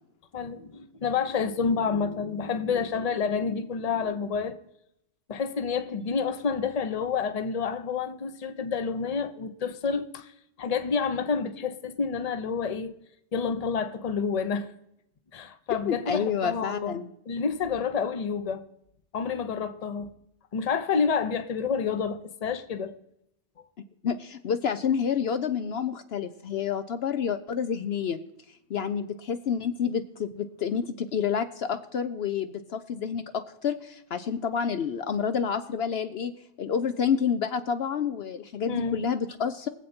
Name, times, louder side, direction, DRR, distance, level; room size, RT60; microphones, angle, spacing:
voice 1, 0.3-4.6 5.3-10.3 10.6-12.9 13.3-14.7 15.3-17.0 17.3-18.6 19.1-20.1 20.5-22.9 38.7-39.0, left 5 dB, 35° left, 0.8 m, -29 dB
voice 2, 15.7-17.1 24.0-28.2 28.5-36.3 36.6-39.7, left 7 dB, 65° left, 0.9 m, -29 dB
22.5 x 7.8 x 4.3 m
omnidirectional pair, 1.2 m